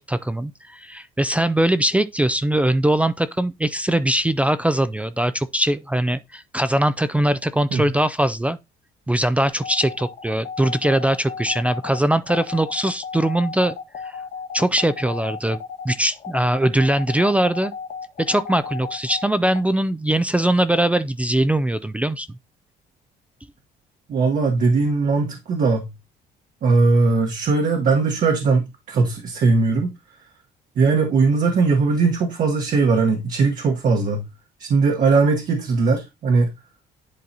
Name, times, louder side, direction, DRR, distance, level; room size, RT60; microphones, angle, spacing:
voice 1, 0.0-8.6 9.1-13.8 14.0-14.2 14.5-15.6 15.8-17.7 18.2-22.3, right 1 dB, 10° right, 0.4 m, -21 dB
sound 1, 9.5-19.6, left 6 dB, 45° left, 1.4 m, -34 dB
voice 2, 24.1-25.9 26.6-29.9 30.8-34.3 34.6-36.5, right 4 dB, 55° right, 1.2 m, -19 dB
10.5 x 3.9 x 2.8 m
cardioid pair, 110°, 17 cm